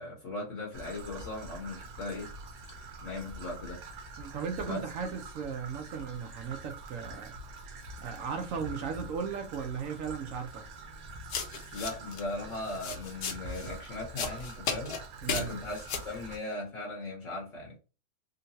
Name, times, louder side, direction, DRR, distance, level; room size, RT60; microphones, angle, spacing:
voice 1, 0.0-2.3 3.0-3.8 4.6-4.9 11.7-14.9 15.3-17.8, left 2 dB, 55° left, 1.2 m, -38 dB
Traffic noise roadway noise / Trickle dribble, 0.7-16.4, right 2 dB, 85° right, 1.3 m, -45 dB
voice 2, 4.2-7.4 8.0-10.6 15.2-15.5, right 6 dB, 65° right, 0.9 m, -36 dB
sound 1, 11.3-12.2 12.5-13.7 14.2-15.0 15.3-16.1, left 6 dB, 80° left, 1.3 m, -35 dB
3.8 x 2.2 x 2.6 m
omnidirectional pair, 1.7 m